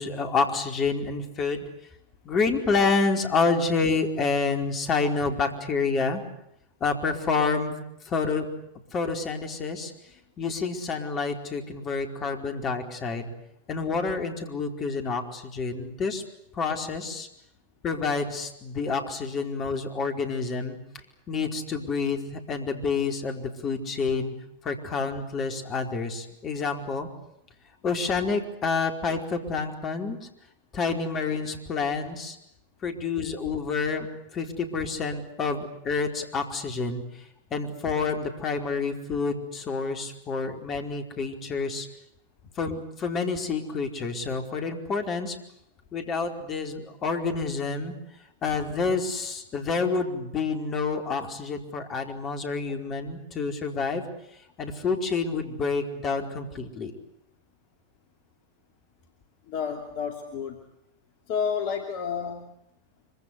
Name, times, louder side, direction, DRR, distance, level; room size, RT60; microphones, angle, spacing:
voice 1, 0.0-1.6 2.2-6.2 6.8-7.7 8.0-8.5 8.9-9.9 10.4-13.3 13.7-16.2 16.5-17.3 17.8-20.8 21.3-24.3 24.6-27.1 27.8-30.2 30.7-32.4 32.8-34.1 34.3-37.0 37.5-41.9 42.6-45.4 45.9-47.9 48.4-54.0 54.6-56.9, left 4 dB, 30° left, 5 dB, 4.6 m, -28 dB
voice 2, 59.5-60.6 61.3-62.5, left 7 dB, 45° left, 5 dB, 2.9 m, -30 dB
25.5 x 25.0 x 8.4 m, 0.77 s
figure-of-eight pair, 90°, 0 cm